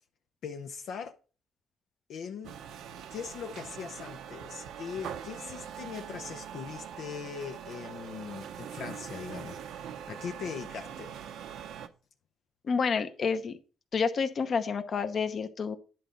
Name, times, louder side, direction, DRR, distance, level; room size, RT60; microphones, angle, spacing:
voice 1, 0.4-1.2 2.1-2.6 3.1-11.2, left 6 dB, 75° left, 0.6 m, -40 dB
sound 1, 2.4-11.9, right 8 dB, 85° right, 0.8 m, -43 dB
voice 2, 12.6-13.5 13.9-15.8, left 5 dB, 50° left, 0.9 m, -29 dB
10.5 x 3.9 x 5.2 m
cardioid pair, 90°, 0 cm